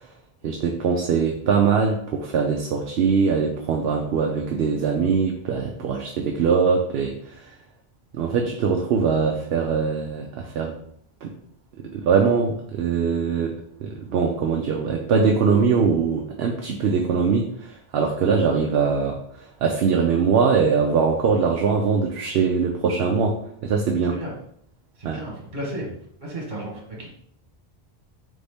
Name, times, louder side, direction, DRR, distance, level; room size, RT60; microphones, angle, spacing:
voice 1, 0.4-7.5 8.1-10.8 11.2-11.3 11.9-13.6 13.8-24.2 25.0-25.2, right 5 dB, 75° right, 1 dB, 0.8 m, -22 dB
voice 2, 25.0-25.9 26.2-27.1, right 1 dB, 50° right, -3 dB, 1.6 m, -33 dB
4.0 x 3.5 x 3.4 m, 0.66 s
omnidirectional pair, 1.1 m